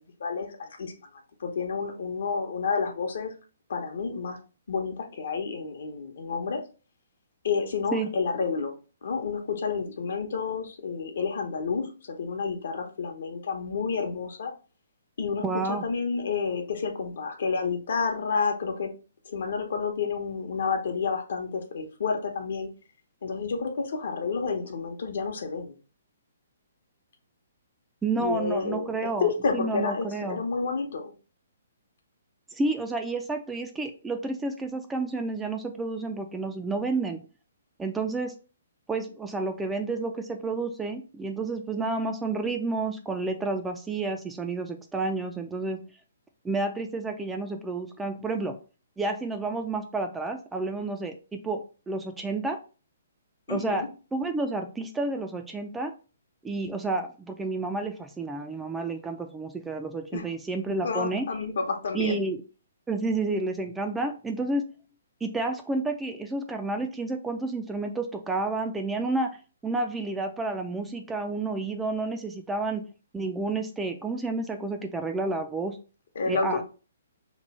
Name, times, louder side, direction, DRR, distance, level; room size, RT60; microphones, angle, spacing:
voice 1, 0.2-0.9 1.4-3.3 3.7-4.4 4.7-6.6 7.4-8.7 9.0-14.5 15.2-18.9 19.2-22.7 23.2-25.7 28.2-31.1 53.5-53.9 60.1-60.3 60.8-62.2 76.1-76.7, left 5 dB, 70° left, 4 dB, 0.8 m, -30 dB
voice 2, 15.4-15.8 28.0-30.4 32.6-37.2 37.8-38.3 38.9-45.8 46.4-48.5 49.0-52.6 53.5-53.9 54.1-55.9 56.4-61.3 61.9-62.4 62.9-64.6 65.2-69.3 69.6-72.8 73.1-75.8 76.3-76.6, right 3 dB, 10° right, 5 dB, 0.3 m, -30 dB
3.0 x 2.2 x 4.1 m, 0.35 s
hypercardioid pair, 150°, 0 cm